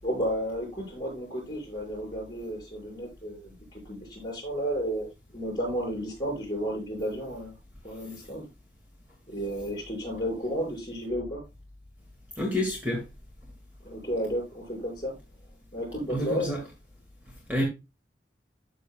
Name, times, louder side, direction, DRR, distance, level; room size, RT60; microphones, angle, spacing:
voice 1, 0.0-7.6 7.8-8.5 9.3-11.4 13.8-15.2 15.7-16.5, equal, 25° left, 5.5 m, -32 dB
voice 2, 12.4-13.0 16.1-16.6 17.5-17.6, left 1 dB, 10° right, 2.1 m, -28 dB
13.0 x 6.8 x 2.3 m
head